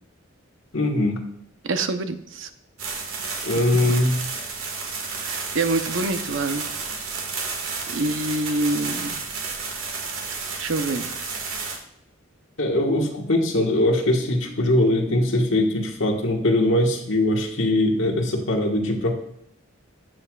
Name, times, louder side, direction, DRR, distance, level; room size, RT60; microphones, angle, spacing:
voice 1, 0.7-1.2 3.4-4.2 12.6-19.2, left 1 dB, 70° left, 1 dB, 1.6 m, -21 dB
voice 2, 1.6-2.5 3.4-3.6 5.2-6.7 7.9-9.1 10.6-11.1, right 2 dB, 70° right, 8 dB, 0.7 m, -26 dB
sound 1, 2.8-11.8, right 4 dB, 90° right, 1.7 m, -31 dB
12.0 x 7.8 x 2.4 m, 0.73 s
head